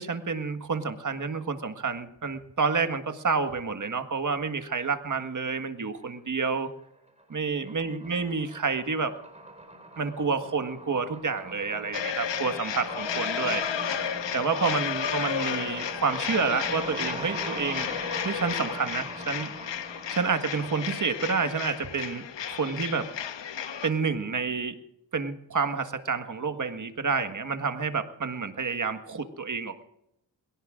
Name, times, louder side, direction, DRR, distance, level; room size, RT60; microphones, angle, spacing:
voice 1, 0.0-6.7 7.3-9.2 10.0-13.7 14.3-17.9 18.2-19.5 20.1-23.1 23.8-24.8 25.1-29.8, right 5 dB, 45° right, 8 dB, 1.7 m, -29 dB
sound 1, 5.8-6.5 6.8-22.0, right 1 dB, 15° right, 4.7 m, -42 dB
sound 2, 11.9-23.9, left 8 dB, 75° left, 1.3 m, -33 dB
22.0 x 17.5 x 2.5 m, 0.79 s
cardioid pair, 65°, 44 cm